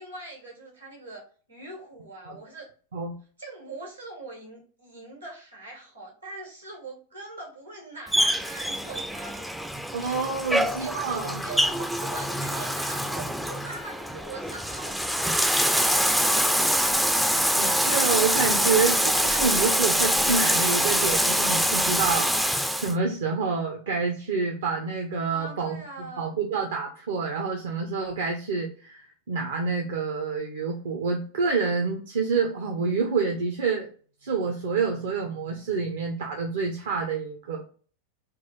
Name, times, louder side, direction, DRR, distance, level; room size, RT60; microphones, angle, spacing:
voice 1, 0.0-2.7 3.4-9.5 10.5-15.4 15.6-16.5 25.3-26.3, right 2 dB, 85° right, 1 dB, 1.7 m, -42 dB
Bathtub (filling or washing), 8.1-22.9, equal, ahead, 0.3 m, -24 dB
voice 2, 9.9-11.4 17.3-22.3 22.8-33.9 34.2-37.6, right 5 dB, 60° right, 2 dB, 0.6 m, -28 dB
3.7 x 2.5 x 4.3 m, 0.41 s
figure-of-eight pair, 90°, 0 cm